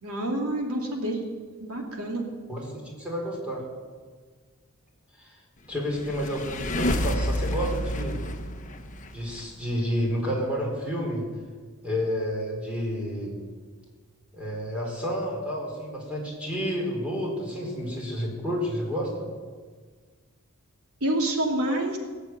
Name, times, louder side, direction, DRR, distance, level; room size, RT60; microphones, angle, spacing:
voice 1, 0.0-1.2 1.6-2.2 21.0-22.0, right 1 dB, 85° right, 1 dB, 2.9 m, -27 dB
voice 2, 2.5-3.6 5.2-5.3 5.7-8.2 9.1-11.2 11.8-13.4 14.3-19.3, equal, 5° right, -3 dB, 4.4 m, -30 dB
sound 1, 5.8-9.4, equal, 35° left, 1.1 m, -29 dB
19.0 x 7.2 x 9.2 m, 1.5 s
head